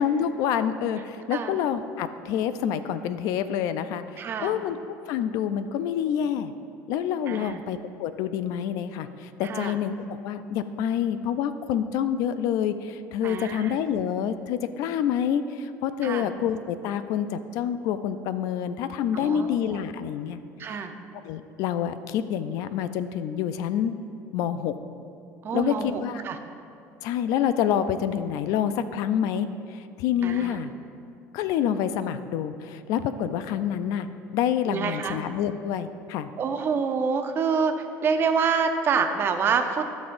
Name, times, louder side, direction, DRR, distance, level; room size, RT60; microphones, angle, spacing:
voice 1, 0.0-6.5 6.9-20.8 21.2-23.9 24.3-24.7 25.5-26.2 27.0-30.7 31.3-34.1 34.3-36.3, left 9 dB, 75° left, 11 dB, 0.4 m, -27 dB
voice 2, 4.2-4.6 7.3-7.6 9.4-9.7 13.2-13.7 16.0-16.3 19.1-19.6 20.6-20.9 25.4-26.4 30.2-30.6 34.7-35.2 36.4-39.8, right 5 dB, 40° right, 6 dB, 0.6 m, -27 dB
15.0 x 6.1 x 2.6 m, 2.6 s
cardioid pair, 130°, 6 cm